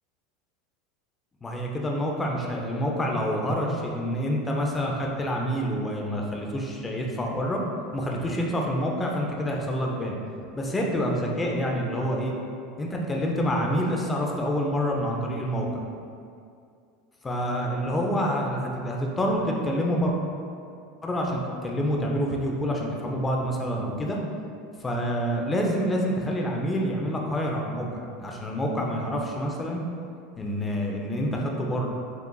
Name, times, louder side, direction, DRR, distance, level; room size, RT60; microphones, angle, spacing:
voice 1, 1.4-7.6 7.9-10.2 10.5-12.3 12.8-15.8 17.2-20.1 21.0-24.2 24.8-29.8 30.4-31.9, equal, 15° left, -1 dB, 0.5 m, -27 dB
6.8 x 2.4 x 2.3 m, 2.4 s
supercardioid pair, 135°, 0 cm